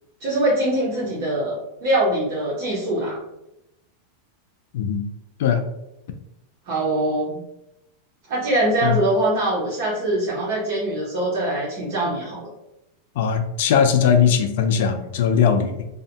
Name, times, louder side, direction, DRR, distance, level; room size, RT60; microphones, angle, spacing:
voice 1, 0.2-3.2 6.7-7.4 8.3-12.5, right 1 dB, 50° right, -6 dB, 0.9 m, -23 dB
voice 2, 13.2-15.8, left 7 dB, 65° left, 7 dB, 0.3 m, -19 dB
2.7 x 2.1 x 2.7 m, 0.86 s
supercardioid pair, 160°, 0 cm